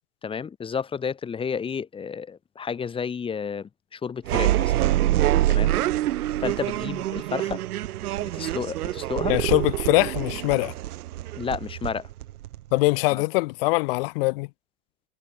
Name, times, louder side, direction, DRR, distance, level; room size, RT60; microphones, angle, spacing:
voice 1, 0.2-4.7 5.5-5.7 6.4-7.6 8.2-9.3 11.4-12.1 13.1-13.2, left 6 dB, 10° left, 1.0 m, -31 dB
sound 1, 4.2-12.9, right 14 dB, 80° right, 1.3 m, -25 dB
voice 2, 9.3-10.7 12.7-14.5, left 24 dB, 40° left, 0.5 m, -22 dB
supercardioid pair, 140°, 44 cm